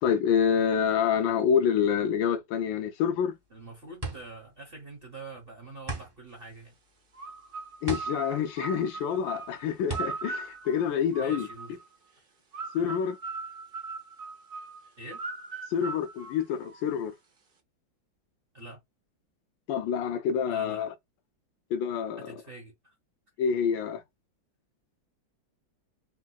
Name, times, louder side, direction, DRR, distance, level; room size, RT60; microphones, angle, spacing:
voice 1, 0.0-3.3 7.8-11.5 12.7-13.2 15.7-17.1 19.7-20.9 21.7-22.3 23.4-24.0, left 7 dB, 80° left, 1.3 m, -27 dB
sound 1, 3.2-11.5, right 2 dB, 30° right, 0.4 m, -40 dB
voice 2, 3.5-6.8 11.2-11.8 15.0-15.2 18.5-18.8 20.5-20.8 22.2-22.9, right 2 dB, 45° right, 0.8 m, -45 dB
sound 2, 7.1-11.9 12.5-17.0, right 4 dB, 85° right, 0.4 m, -39 dB
3.6 x 2.8 x 2.2 m
omnidirectional pair, 2.1 m